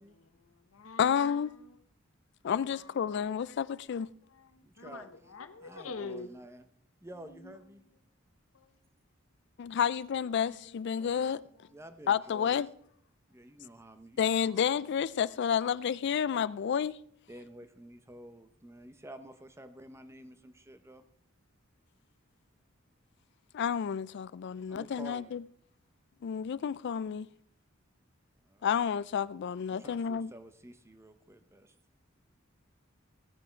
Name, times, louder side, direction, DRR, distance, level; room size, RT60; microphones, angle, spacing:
voice 1, 0.0-1.8 2.7-4.1 4.3-6.3 7.2-7.6 8.5-8.8 10.3-11.7, left 4 dB, 85° left, 0.8 m, -48 dB
voice 2, 1.0-1.5 2.4-4.1 9.6-11.4 12.1-12.7 14.2-17.0 23.5-25.4 26.2-27.3 28.6-30.3, left 8 dB, 60° left, 0.3 m, -30 dB
voice 3, 4.6-5.1 5.6-6.6 7.0-7.8 10.9-11.1 11.7-12.6 13.3-14.7 17.3-21.0 24.7-25.4 28.4-28.7 29.7-31.7, right 1 dB, 15° right, 0.7 m, -50 dB
16.0 x 6.1 x 4.5 m
head